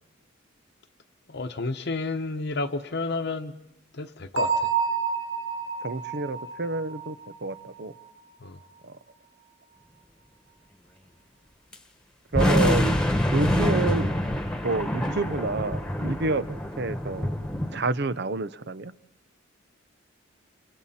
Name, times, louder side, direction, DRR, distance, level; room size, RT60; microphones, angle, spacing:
voice 1, 1.3-3.5 3.9-4.5 8.4-8.6, left 3 dB, 55° left, 4 dB, 1.0 m, -30 dB
Bell, 4.4-8.0, right 6 dB, 80° right, 1.6 m, -29 dB
voice 2, 5.8-7.2 7.4-7.9 8.9-9.0 12.3-13.0 13.3-14.2 14.6-17.3 17.7-18.9, right 3 dB, 55° right, 15 dB, 0.7 m, -28 dB
sound 1, 11.7-11.8 12.3-17.8, left 1 dB, 5° left, 1.6 m, -25 dB
30.0 x 28.5 x 4.3 m, 0.85 s
head